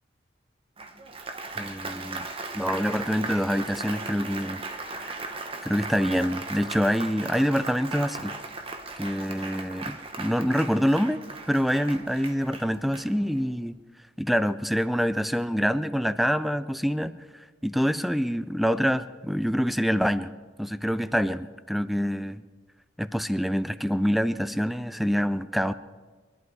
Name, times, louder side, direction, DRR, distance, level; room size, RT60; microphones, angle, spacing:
Applause, 0.8-13.5, right 3 dB, 30° right, 1.1 m, -37 dB
voice 1, 1.6-2.3 2.5-5.3 5.6-8.3 9.0-13.8 14.2-17.2 17.6-20.3 20.6-22.4 23.0-25.7, equal, ahead, 14 dB, 0.4 m, -26 dB
23.0 x 11.0 x 4.7 m, 1.4 s
head